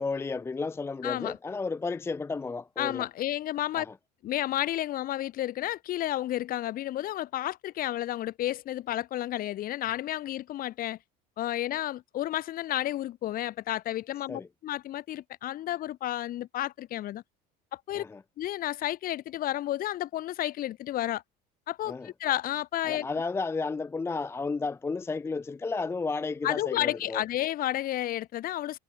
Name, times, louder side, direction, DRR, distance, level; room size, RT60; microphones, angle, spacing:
voice 1, 0.0-3.1 3.7-3.9 14.3-14.5 18.0-18.2 21.9-22.1 22.8-27.2, left 4 dB, 15° left, 0.5 m, -32 dB
voice 2, 1.0-1.4 2.8-3.9 4.2-11.0 11.4-17.2 17.7-18.0 18.4-21.2 21.7-23.1 26.4-28.8, left 13 dB, 50° left, 2.1 m, -31 dB
cardioid pair, 130°, 19 cm